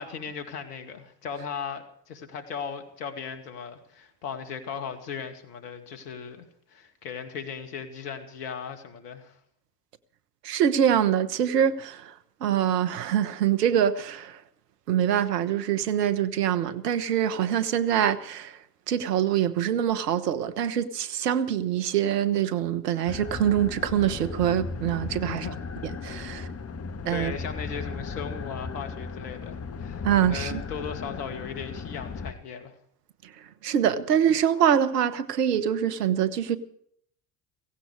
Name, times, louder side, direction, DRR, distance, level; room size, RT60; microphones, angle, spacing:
voice 1, 0.0-9.4 25.3-25.6 27.1-32.7, left 6 dB, 75° left, 2.4 m, -37 dB
voice 2, 10.4-12.1 12.4-14.4 14.9-18.6 18.9-25.5 26.0-26.5 27.0-27.3 30.0-30.6 33.6-36.6, right 9 dB, 80° right, 1.3 m, -24 dB
sound 1, 23.1-32.3, left 5 dB, 30° left, 1.7 m, -36 dB
17.0 x 16.5 x 4.9 m
hypercardioid pair, 65°, 47 cm